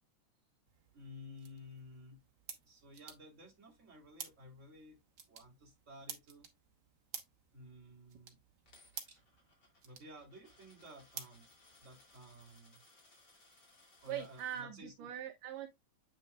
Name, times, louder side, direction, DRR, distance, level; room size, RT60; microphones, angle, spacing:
sound 1, 0.7-12.2, right 7 dB, 60° right, 1.1 m, -53 dB
voice 1, 0.9-2.2 2.6-5.0 5.3-6.5 7.5-8.4 9.1-9.2 9.8-11.5 11.8-12.8 14.0-15.1, left 1 dB, 25° right, 2.7 m, -54 dB
Coin (dropping), 8.7-14.6, left 2 dB, 35° left, 2.9 m, -65 dB
voice 2, 14.1-15.7, right 11 dB, 75° right, 1.7 m, -42 dB
8.5 x 6.1 x 2.3 m
omnidirectional pair, 3.4 m